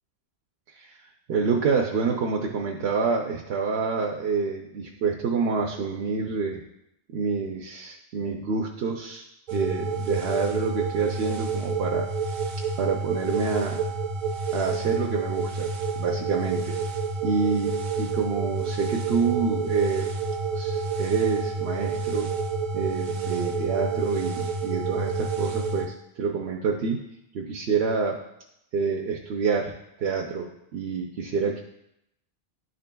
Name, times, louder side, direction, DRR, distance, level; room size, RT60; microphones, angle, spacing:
voice 1, 1.3-6.6 7.1-9.2 9.5-12.1 12.8-13.8 14.5-16.8 17.2-20.1 20.5-22.3 22.7-27.0 27.3-28.2 28.7-29.7 30.0-31.6, right 5 dB, 80° right, 0 dB, 0.9 m, -27 dB
sound 1, 9.5-25.9, right 4 dB, 55° right, 0.6 m, -29 dB
11.0 x 3.9 x 2.2 m, 0.82 s
omnidirectional pair, 1.0 m